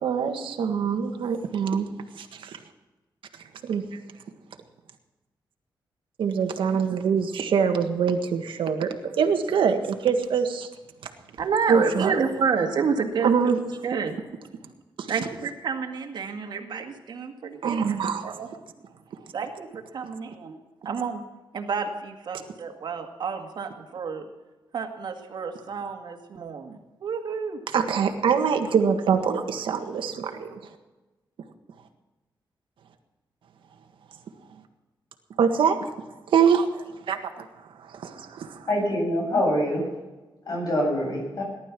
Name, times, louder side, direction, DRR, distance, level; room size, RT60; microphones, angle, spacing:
voice 1, 0.0-1.9 2.1-2.6 3.6-3.8 6.2-10.7 11.7-12.1 13.2-13.6 15.0-15.1 17.6-18.4 27.7-30.6 35.4-35.9 36.3-37.4 37.8-38.7, right 6 dB, 85° right, 5 dB, 1.7 m, -24 dB
voice 2, 11.4-13.3 13.8-14.2 15.1-18.0 18.2-18.5 19.3-20.6 20.9-21.2 21.5-24.3 24.7-27.6, right 5 dB, 60° right, 4 dB, 1.9 m, -29 dB
voice 3, 38.7-39.9 40.5-41.4, left 1 dB, 45° left, 0 dB, 7.6 m, -25 dB
18.5 x 12.0 x 6.1 m, 1.1 s
wide cardioid pair, 165°, 8 cm